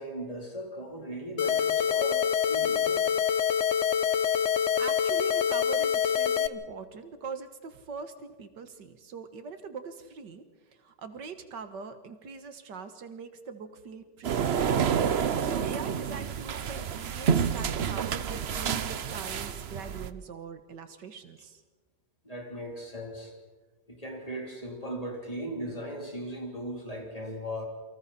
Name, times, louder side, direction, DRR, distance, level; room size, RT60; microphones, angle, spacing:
voice 1, 0.0-3.0 22.2-23.3 23.9-27.6, equal, 20° left, 0 dB, 3.6 m, -38 dB
sound 1, 1.4-6.5, left 8 dB, 55° left, 0.9 m, -26 dB
voice 2, 4.5-10.4 10.7-14.8 15.4-21.6, right 5 dB, 80° right, 9 dB, 2.1 m, -42 dB
sound 2, 14.2-20.1, right 7 dB, 50° right, 0.8 m, -29 dB
28.0 x 24.5 x 4.3 m, 1.3 s
omnidirectional pair, 1.8 m